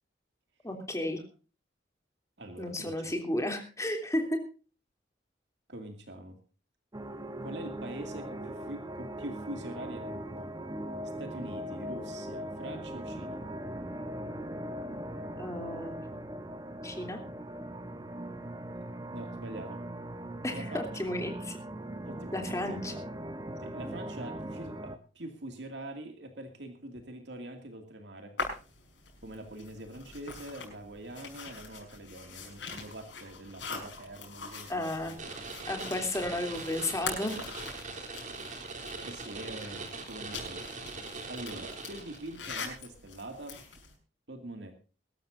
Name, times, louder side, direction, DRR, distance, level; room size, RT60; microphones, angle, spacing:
voice 1, 0.6-1.2 2.6-4.4 15.4-15.9 16.8-17.2 20.4-21.6 22.3-22.9 34.7-35.1 35.7-37.4, left 1 dB, 15° left, 4 dB, 3.1 m, -33 dB
voice 2, 2.4-3.1 5.7-6.4 7.4-10.5 11.2-13.4 19.1-19.8 20.5-21.1 22.0-22.8 23.6-28.3 29.2-35.6 36.3-36.7 39.0-40.7 41.3-43.6 44.3-44.7, right 1 dB, 70° right, 5 dB, 2.4 m, -44 dB
sound 1, 6.9-25.0, right 1 dB, 20° right, 1.0 m, -40 dB
sound 2, 28.4-43.9, left 4 dB, 80° left, 5.4 m, -43 dB
sound 3, 35.2-42.5, right 3 dB, 45° right, 3.3 m, -41 dB
22.5 x 13.0 x 2.7 m, 0.34 s
head